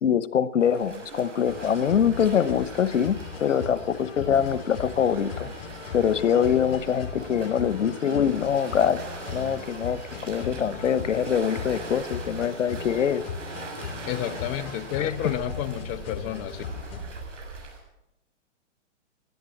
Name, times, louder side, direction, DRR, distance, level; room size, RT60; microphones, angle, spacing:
voice 1, 0.0-5.5 5.9-9.0 9.3-10.0 10.3-13.2 15.0-15.1, left 8 dB, 90° left, 1.0 m, -24 dB
Waves surf, 0.6-17.8, right 3 dB, 80° right, 6.9 m, -41 dB
sound 1, 1.4-17.1, left 7 dB, 50° left, 1.7 m, -38 dB
voice 2, 14.1-16.6, left 11 dB, 20° left, 0.6 m, -30 dB
16.5 x 11.5 x 7.3 m
hypercardioid pair, 140°, 36 cm